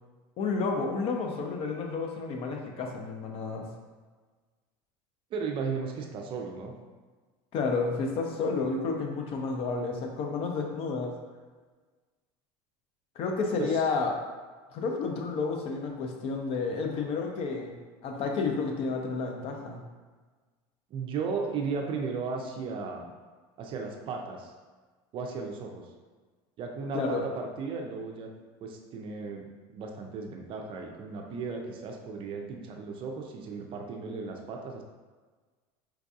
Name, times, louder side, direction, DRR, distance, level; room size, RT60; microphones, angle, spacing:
voice 1, 0.4-3.7 7.5-11.1 13.2-14.1 14.7-17.7 18.0-19.8 26.9-27.2, left 4 dB, 50° left, 2 dB, 0.6 m, -31 dB
voice 2, 5.3-6.8 13.6-13.7 20.9-23.1 23.6-24.5 25.1-25.8 26.6-28.3 28.6-34.8, right 5 dB, 40° right, 1 dB, 0.5 m, -35 dB
4.5 x 2.5 x 2.4 m, 1.4 s
supercardioid pair, 115°, 13 cm